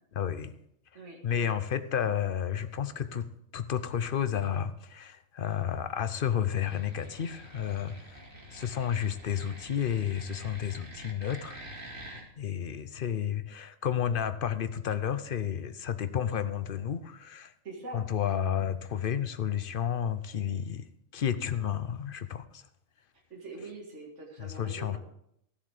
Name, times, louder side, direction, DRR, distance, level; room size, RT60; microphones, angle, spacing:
voice 1, 0.1-0.6 1.2-3.3 3.5-8.2 8.5-11.6 12.4-17.5 17.9-20.9 21.1-22.6 24.4-25.0, left 9 dB, 55° left, 12 dB, 0.7 m, -31 dB
voice 2, 0.9-1.6 17.6-18.1 23.3-25.0, right 2 dB, 65° right, 0 dB, 2.3 m, -44 dB
sound 1, 6.6-12.2, right 1 dB, 85° right, 2.7 m, -47 dB
14.5 x 7.3 x 4.9 m, 0.75 s
omnidirectional pair, 1.3 m